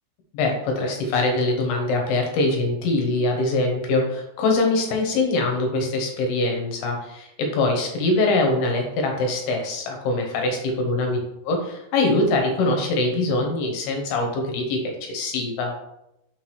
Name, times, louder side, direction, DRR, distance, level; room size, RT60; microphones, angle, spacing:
voice 1, 0.3-11.2 11.5-15.7, left 2 dB, 75° left, 2 dB, 2.5 m, -23 dB
6.0 x 5.9 x 3.0 m, 0.85 s
omnidirectional pair, 5.3 m